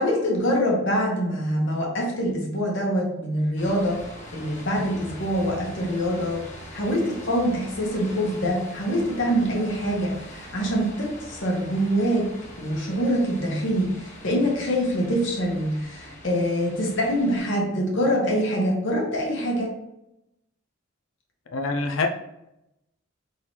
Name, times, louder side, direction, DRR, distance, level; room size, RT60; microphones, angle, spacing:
voice 1, 0.0-4.0 4.3-6.4 6.7-12.3 12.6-19.7, equal, 65° left, -1 dB, 1.2 m, -24 dB
sound 1, 3.6-17.4, left 1 dB, 35° left, 1.3 m, -42 dB
voice 2, 21.5-22.1, left 3 dB, 80° left, 4 dB, 0.5 m, -25 dB
4.3 x 3.8 x 3.2 m, 0.86 s
head